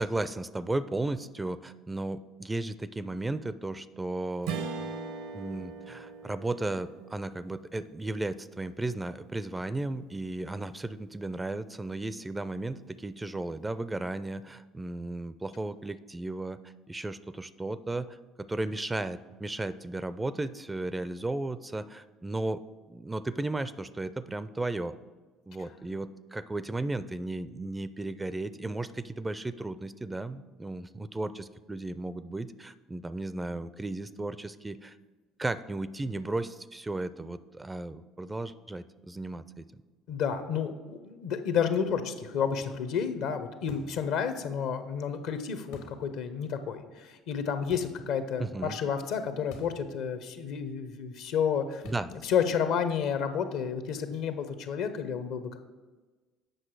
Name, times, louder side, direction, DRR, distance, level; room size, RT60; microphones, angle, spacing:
voice 1, 0.0-4.5 5.3-16.6 16.9-18.1 18.4-22.6 22.9-24.9 25.5-34.9 35.4-39.6 48.4-48.8 51.8-52.1, right 2 dB, 15° right, 15 dB, 0.4 m, -35 dB
Strum, 4.4-9.1, right 4 dB, 70° right, 0.7 m, -40 dB
voice 2, 40.1-51.8 52.1-55.6, left 7 dB, 65° left, 10 dB, 0.7 m, -31 dB
sound 1, 43.7-44.1 45.7-46.1 47.7-48.0 49.5-49.9 50.1-50.2 51.8-52.2, left 2 dB, 80° left, 1.5 m, -49 dB
7.8 x 6.0 x 4.7 m, 1.3 s
hypercardioid pair, 60°, 0 cm